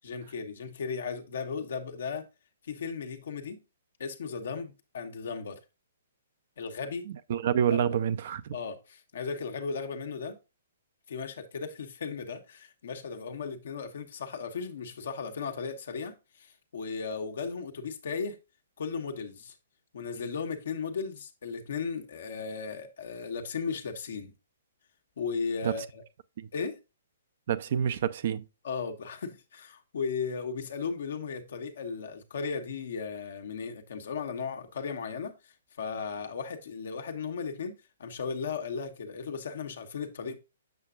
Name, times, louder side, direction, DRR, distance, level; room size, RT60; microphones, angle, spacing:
voice 1, 0.0-2.3 2.6-3.6 4.0-5.6 6.6-7.1 7.7-7.8 8.5-10.4 11.1-18.4 18.8-19.5 19.9-24.3 25.2-26.0 26.5-26.8 28.6-40.4, left 5 dB, 65° left, 1.3 m, -36 dB
voice 2, 7.1-8.6 25.6-25.8 26.4-26.5 27.5-28.5, right 8 dB, 55° right, 0.6 m, -28 dB
7.5 x 6.7 x 2.5 m
figure-of-eight pair, 125°, 0 cm